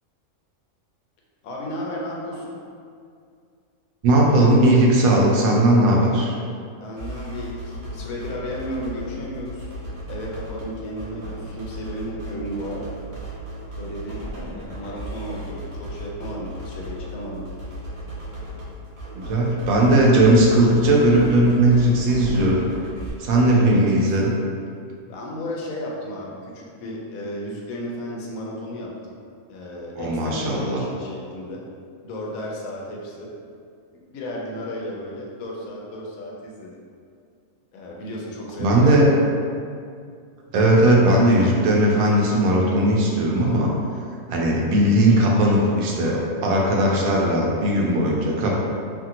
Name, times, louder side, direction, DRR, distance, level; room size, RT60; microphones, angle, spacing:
voice 1, 1.4-2.6 6.8-12.9 13.8-17.5 23.3-24.0 25.1-29.1 29.5-31.6 32.0-33.3 34.1-36.7 37.7-39.1, equal, 85° left, -3 dB, 1.0 m, -33 dB
voice 2, 4.0-6.4 19.1-22.6 23.2-24.3 30.0-30.8 38.6-39.1 40.5-43.7 44.3-48.6, right 1 dB, 90° right, -2 dB, 1.1 m, -18 dB
sound 1, 7.0-23.1, right 1 dB, 50° right, 0.6 m, -35 dB
2.8 x 2.5 x 2.7 m, 2.3 s
omnidirectional pair, 1.5 m